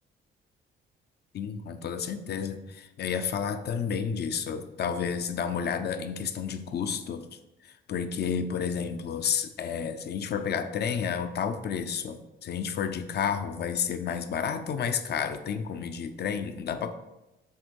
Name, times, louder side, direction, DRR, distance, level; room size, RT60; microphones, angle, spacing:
voice 1, 1.3-7.3 7.6-16.9, left 7 dB, 55° left, 9 dB, 0.6 m, -31 dB
7.5 x 3.6 x 4.6 m, 0.99 s
cardioid pair, 90°, 20 cm